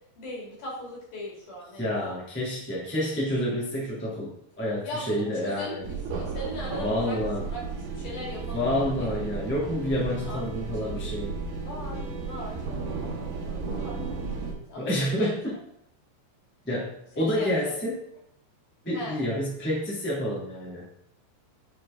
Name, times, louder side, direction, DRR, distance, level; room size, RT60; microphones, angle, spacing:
voice 1, 0.2-1.9 4.8-7.2 7.5-7.6 8.0-9.1 10.3-10.4 10.8-11.0 11.6-14.0 14.7-15.3 17.2-17.8 18.9-19.2, equal, 50° left, -3 dB, 3.4 m, -39 dB
voice 2, 1.7-5.9 6.7-7.5 8.5-11.3 14.7-15.6 16.6-18.1 18.8-20.8, left 1 dB, 10° left, -6 dB, 0.7 m, -29 dB
sound 1, 5.8-14.5, right 4 dB, 65° right, 2.3 m, -34 dB
10.5 x 4.6 x 3.7 m, 0.74 s
omnidirectional pair, 5.4 m